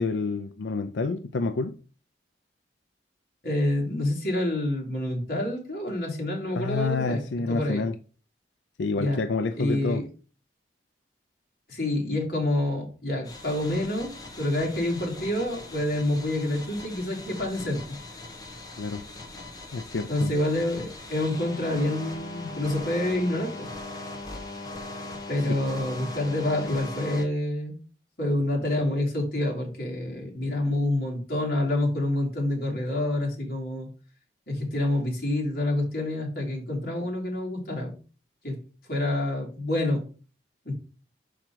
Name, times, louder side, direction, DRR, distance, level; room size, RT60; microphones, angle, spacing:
voice 1, 0.0-1.8 6.5-8.0 8.8-10.0 18.8-19.0 19.7-20.3 25.5-25.6, left 4 dB, 90° left, 0.5 m, -28 dB
voice 2, 3.4-7.8 8.9-9.2 9.6-10.0 11.7-14.1 14.4-17.8 20.1-23.7 25.3-27.8 28.2-33.9 34.5-38.0 38.4-38.6 38.9-40.0 40.6-40.7, left 1 dB, 55° left, 2.6 m, -27 dB
sound 1, 13.2-27.3, left 2 dB, 20° left, 1.1 m, -40 dB
6.1 x 5.0 x 4.5 m
head